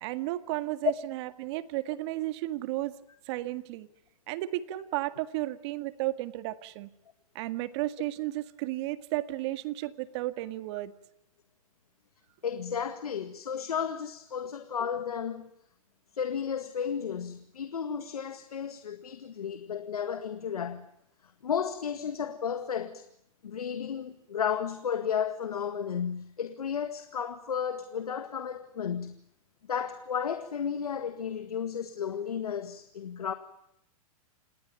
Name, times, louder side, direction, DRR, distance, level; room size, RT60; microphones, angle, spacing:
voice 1, 0.0-2.9 3.3-3.9 4.3-6.9 7.4-10.9, right 16 dB, 50° right, 1.8 m, -33 dB
voice 2, 12.4-15.4 16.2-20.9 21.4-23.0 23.4-29.2 29.7-33.3, left 7 dB, 85° left, 1.9 m, -33 dB
28.0 x 20.5 x 9.0 m
hypercardioid pair, 125°, 19 cm